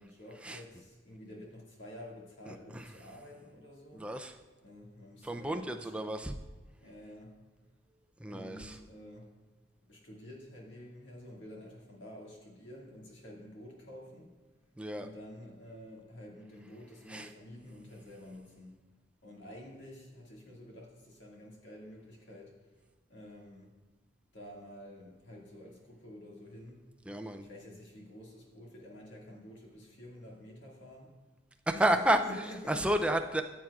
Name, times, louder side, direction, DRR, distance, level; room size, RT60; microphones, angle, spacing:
voice 1, 0.0-4.1 4.6-6.2 6.8-7.3 8.3-9.3 9.9-14.3 14.9-18.8 19.2-22.5 23.1-23.7 24.3-26.8 27.4-31.1 31.7-31.9 32.2-33.1, left 1 dB, 60° left, -3 dB, 1.9 m, -49 dB
voice 2, 2.5-2.9 3.9-4.4 5.2-6.3 8.2-8.8 14.8-15.1 17.1-17.3 27.1-27.5 31.7-32.2 32.7-33.4, right 1 dB, 5° right, 5 dB, 0.3 m, -31 dB
14.0 x 7.5 x 2.4 m, 1.3 s
head